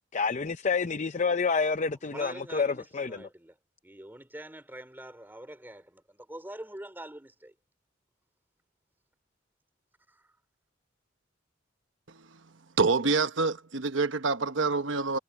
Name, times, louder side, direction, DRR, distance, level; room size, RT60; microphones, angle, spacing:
voice 1, 0.1-3.3, left 5 dB, 40° left, 0.6 m, -28 dB
voice 2, 2.1-3.5 3.8-6.0 6.3-7.5, right 1 dB, 10° right, 2.9 m, -44 dB
voice 3, 12.8-15.2, right 4 dB, 75° right, 1.1 m, -26 dB
head